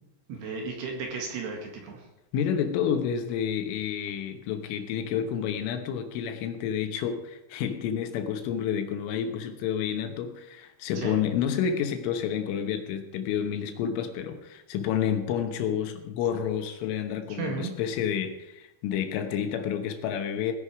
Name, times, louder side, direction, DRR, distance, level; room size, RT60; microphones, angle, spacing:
voice 1, 0.3-2.0 11.0-11.2 17.4-17.7, right 4 dB, 60° right, 1 dB, 3.5 m, -34 dB
voice 2, 2.3-20.5, left 8 dB, 75° left, 6 dB, 3.5 m, -29 dB
18.0 x 10.5 x 4.8 m, 0.95 s
omnidirectional pair, 5.9 m